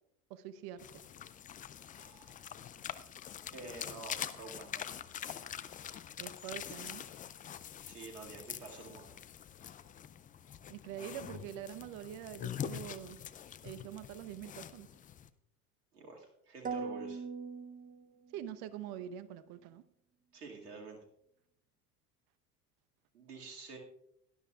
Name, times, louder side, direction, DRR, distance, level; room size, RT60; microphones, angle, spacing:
voice 1, 0.3-1.0 6.2-7.1 10.7-13.2 13.6-14.9 18.3-19.8, right 10 dB, 50° right, 14 dB, 0.9 m, -45 dB
sound 1, 0.8-15.3, left 9 dB, 20° left, 0.4 m, -45 dB
voice 2, 1.8-2.5 3.5-4.9 7.1-7.3 7.7-9.2 15.9-17.2 20.3-21.0 23.1-23.8, right 3 dB, 85° right, 0 dB, 2.3 m, -49 dB
sound 2, 16.6-18.6, right 5 dB, 20° right, 0.8 m, -41 dB
17.5 x 12.0 x 2.4 m, 0.75 s
hypercardioid pair, 85°, 45 cm